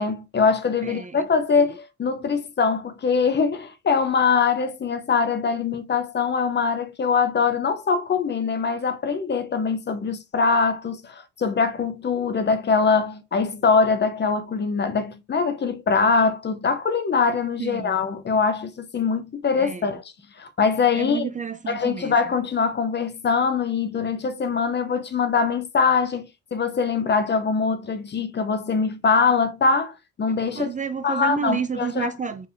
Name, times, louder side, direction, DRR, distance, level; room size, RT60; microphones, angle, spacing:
voice 1, 0.0-20.0 20.4-21.3 21.7-30.7 31.0-32.1, left 5 dB, 35° left, 0.7 m, -23 dB
voice 2, 0.8-1.2 1.5-1.7 17.6-18.0 19.6-19.9 20.9-22.2 30.5-32.5, right 6 dB, 25° right, 0.4 m, -30 dB
4.6 x 3.4 x 2.6 m
cardioid pair, 90°, 30 cm